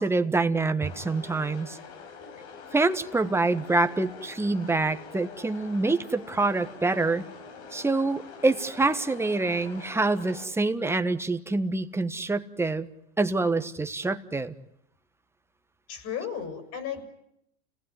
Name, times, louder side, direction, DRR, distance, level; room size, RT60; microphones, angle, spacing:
voice 1, 0.0-1.8 2.7-7.2 7.7-12.9 13.2-14.5, right 3 dB, 5° right, 9 dB, 1.4 m, -26 dB
sound 1, 0.8-10.5, left 5 dB, 75° left, 5.2 m, -45 dB
voice 2, 15.9-17.0, left 8 dB, 45° left, 8 dB, 7.1 m, -34 dB
30.0 x 19.0 x 9.7 m, 0.78 s
supercardioid pair, 135°, 33 cm